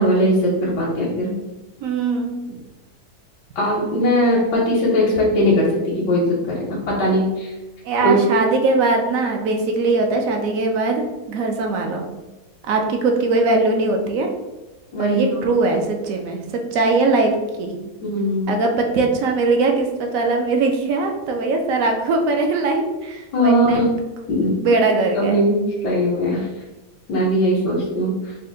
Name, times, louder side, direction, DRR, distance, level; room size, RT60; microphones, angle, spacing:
voice 1, 0.0-1.3 3.6-7.5 8.0-8.2 14.9-15.4 18.0-18.5 23.3-23.9 24.3-24.5 25.1-26.4 27.1-28.1, equal, 85° left, -4 dB, 1.4 m, -19 dB
voice 2, 1.8-2.6 7.8-12.0 12.6-14.3 15.0-17.8 18.5-23.9 24.6-25.4, right 3 dB, 70° right, 2 dB, 0.9 m, -20 dB
4.2 x 2.2 x 3.6 m, 1.1 s
omnidirectional pair, 1.8 m